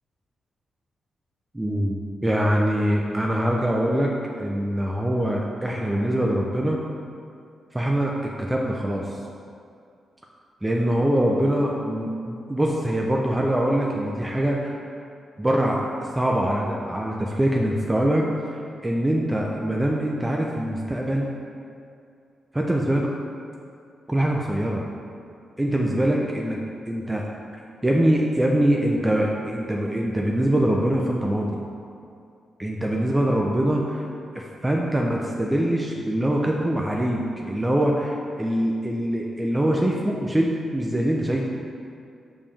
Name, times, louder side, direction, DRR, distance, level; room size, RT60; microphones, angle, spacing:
voice 1, 1.5-6.8 7.7-9.1 10.6-14.7 15.4-15.8 16.1-18.3 18.8-21.3 22.5-23.1 24.1-24.8 25.6-26.6 26.9-27.2 27.8-31.6 32.6-34.1 34.3-41.4, right 1 dB, 15° right, -1 dB, 0.6 m, -23 dB
5.3 x 5.1 x 3.4 m, 2.4 s
hypercardioid pair, 40°, 0 cm